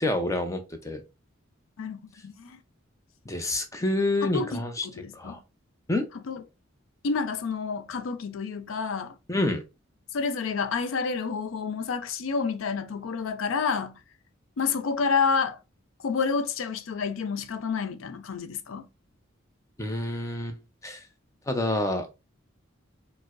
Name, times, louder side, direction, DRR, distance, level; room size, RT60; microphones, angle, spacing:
voice 1, 0.0-1.0 3.3-4.9 5.1-5.4 5.9-6.0 9.3-9.6 19.8-20.6 20.8-21.1 21.5-22.1, left 2 dB, 15° left, 0.5 m, -28 dB
voice 2, 1.8-2.6 4.2-5.4 6.3-6.4 7.0-9.1 10.1-14.0 14.6-15.6 16.0-18.9, left 5 dB, 75° left, 0.4 m, -29 dB
4.5 x 2.1 x 2.4 m
head